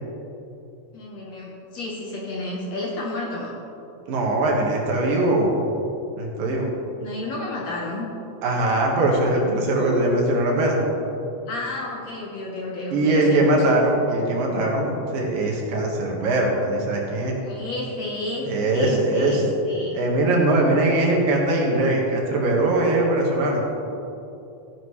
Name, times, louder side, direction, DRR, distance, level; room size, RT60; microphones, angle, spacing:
voice 1, 0.9-3.6 7.0-8.1 11.5-13.8 17.4-20.0, left 2 dB, 65° left, -3 dB, 1.9 m, -31 dB
voice 2, 4.1-5.7 6.2-6.7 8.4-10.8 12.9-17.4 18.5-19.5 19.9-23.6, right 2 dB, 75° right, -1 dB, 3.2 m, -21 dB
15.0 x 10.5 x 3.2 m, 2.8 s
omnidirectional pair, 4.1 m